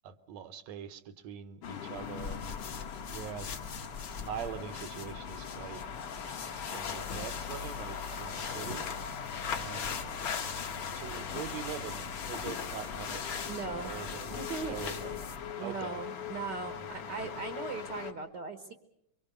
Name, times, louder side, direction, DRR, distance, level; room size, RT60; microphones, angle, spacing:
voice 1, 0.0-2.4 3.1-3.5 4.2-5.8 6.6-8.9 9.5-10.1 10.9-15.2 15.6-16.0 16.8-17.2, right 9 dB, 65° right, 12 dB, 2.0 m, -43 dB
sound 1, 1.6-18.1, left 7 dB, 75° left, 3.2 m, -41 dB
sound 2, 1.9-15.5, left 6 dB, 50° left, 1.8 m, -41 dB
voice 2, 13.5-13.9 14.3-14.8 15.6-18.7, right 4 dB, 50° right, 8 dB, 1.4 m, -39 dB
24.5 x 24.0 x 6.9 m, 0.78 s
omnidirectional pair, 3.7 m